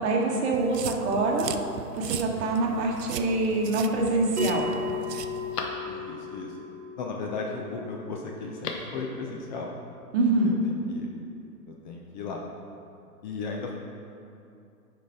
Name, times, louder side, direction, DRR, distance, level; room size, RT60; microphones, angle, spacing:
voice 1, 0.0-1.5 1.9-4.6 10.1-10.5, right 2 dB, 45° right, -1 dB, 1.4 m, -25 dB
sound 1, 0.5-5.7, right 7 dB, 85° right, 0.6 m, -38 dB
Telephone, 3.2-3.8 4.4-4.5 4.8-6.4 8.4-9.0 9.3-9.4, left 4 dB, 70° left, 1.1 m, -39 dB
Bell, 4.4-9.4, left 3 dB, 65° right, 1.3 m, -37 dB
voice 2, 5.9-6.6 7.0-9.7 10.4-11.1 11.7-12.4 13.2-13.7, left 4 dB, 30° left, 0 dB, 0.6 m, -36 dB
9.9 x 5.2 x 3.6 m, 2.5 s
hypercardioid pair, 120°, 47 cm